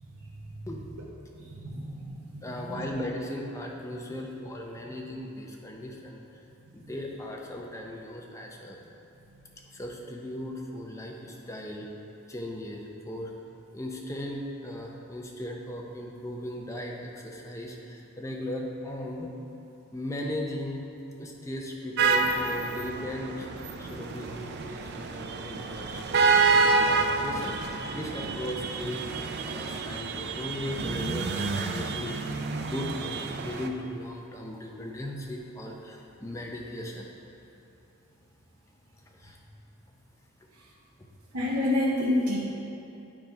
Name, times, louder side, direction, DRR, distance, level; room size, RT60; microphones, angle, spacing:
voice 1, 1.3-2.8 41.3-42.4, left 1 dB, 85° right, -4 dB, 0.9 m, -29 dB
voice 2, 2.4-6.2 6.7-8.8 9.7-11.9 12.3-13.3 13.7-19.3 19.9-20.8 21.2-23.5 23.8-29.0 29.4-32.2 32.6-37.1 39.1-39.4, left 1 dB, 15° left, 0 dB, 0.5 m, -37 dB
sound 1, 22.0-33.7, right 4 dB, 50° right, 0.4 m, -28 dB
8.9 x 3.5 x 5.1 m, 2.8 s
head